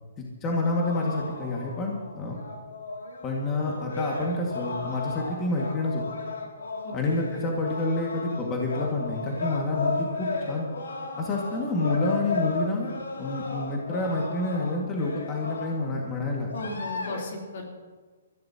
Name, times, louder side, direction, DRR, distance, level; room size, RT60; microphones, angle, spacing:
voice 1, 0.2-2.4 3.2-6.0 6.9-10.7 11.2-12.9 13.2-16.5, left 2 dB, 20° left, -2 dB, 1.9 m, -28 dB
sound 1, 0.6-15.9 16.5-17.2, left 3 dB, 85° left, 2.5 m, -34 dB
voice 2, 16.5-17.8, left 2 dB, 60° left, -1 dB, 3.5 m, -36 dB
21.5 x 14.5 x 2.9 m, 1.4 s
hypercardioid pair, 150°, 0 cm